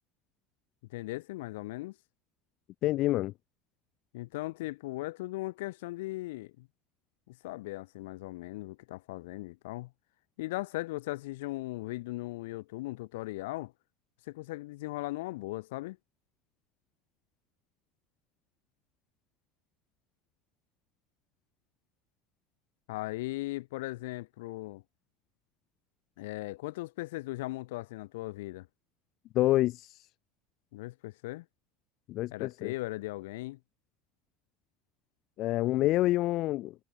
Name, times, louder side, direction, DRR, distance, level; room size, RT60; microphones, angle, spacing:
voice 1, 0.9-1.9 4.1-6.7 7.3-9.9 10.4-13.7 14.3-16.0 22.9-24.8 26.2-28.7 30.7-31.4 32.3-33.6, left 19 dB, 65° left, 3.4 m, -38 dB
voice 2, 2.8-3.3 29.3-29.9 32.1-32.7 35.4-36.7, left 16 dB, 50° left, 1.2 m, -27 dB
figure-of-eight pair, 70°, 0 cm